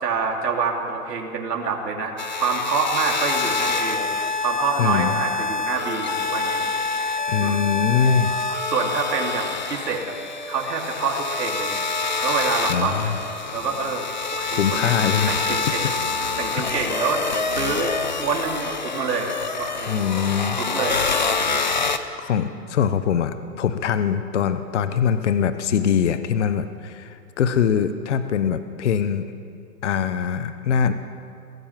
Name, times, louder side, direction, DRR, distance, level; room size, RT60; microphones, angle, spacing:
voice 1, 0.0-2.1 2.4-6.8 7.4-7.7 8.7-10.1 10.5-11.8 12.2-13.2 13.5-14.1 14.3-15.0 15.3-15.9 16.4-17.3 17.5-17.9 18.2-20.1 20.6-21.1, right 5 dB, 90° right, 0 dB, 3.4 m, -26 dB
sound 1, 2.2-22.0, left 4 dB, 30° left, 0.5 m, -26 dB
voice 2, 4.8-5.1 7.3-8.3 12.7-13.2 14.5-15.4 15.8-15.9 16.2-16.7 19.9-20.6 22.2-29.3 29.8-30.9, left 7 dB, 50° left, 11 dB, 0.9 m, -23 dB
22.0 x 15.5 x 7.4 m, 2.5 s
hypercardioid pair, 175°, 47 cm